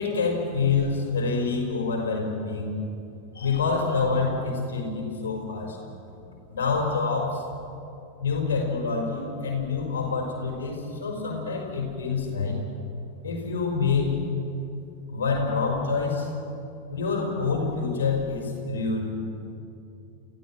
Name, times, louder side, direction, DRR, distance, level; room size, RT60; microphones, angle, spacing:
voice 1, 0.0-2.8 3.3-5.8 6.5-7.4 8.2-12.6 13.2-14.2 15.1-16.3 16.9-19.1, left 4 dB, 65° left, 1 dB, 5.0 m, -27 dB
29.5 x 15.5 x 6.0 m, 2.6 s
figure-of-eight pair, 90°, 0 cm